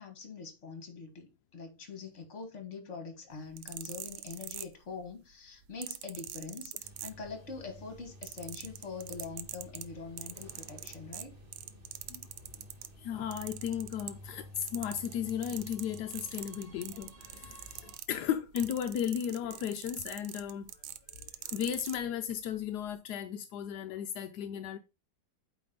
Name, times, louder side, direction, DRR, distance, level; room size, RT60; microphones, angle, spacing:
voice 1, 0.0-11.4 17.7-17.9, left 4 dB, 40° left, 1.7 m, -44 dB
sound 1, 3.4-5.1 5.8-7.6 7.9-12.9 13.3-14.3 14.6-22.0 22.7-22.9, right 13 dB, 80° right, 1.4 m, -43 dB
sound 2, 6.8-18.0, left 1 dB, 25° right, 1.9 m, -52 dB
voice 2, 13.0-20.7 21.1-24.8, left 9 dB, 75° left, 0.9 m, -35 dB
8.4 x 3.5 x 4.0 m
omnidirectional pair, 2.3 m